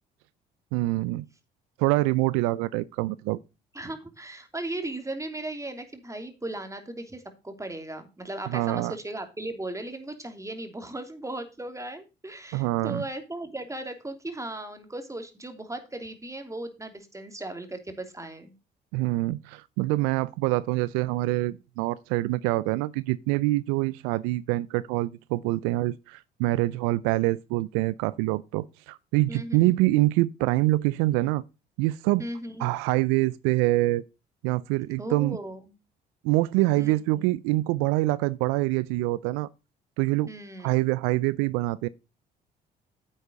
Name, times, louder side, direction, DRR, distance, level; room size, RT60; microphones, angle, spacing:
voice 1, 0.7-1.2 1.8-3.4 8.5-8.9 12.5-13.0 18.9-31.4 31.8-32.2 32.6-34.0 34.4-35.4 36.2-39.5 40.0-40.3 40.6-41.9, right 19 dB, 80° right, 0.5 m, -25 dB
voice 2, 3.7-18.5 29.3-29.8 32.2-32.7 35.0-35.7 36.8-37.2 40.3-40.7, right 1 dB, 15° right, 3.0 m, -37 dB
10.0 x 8.1 x 3.9 m
hypercardioid pair, 55°, 21 cm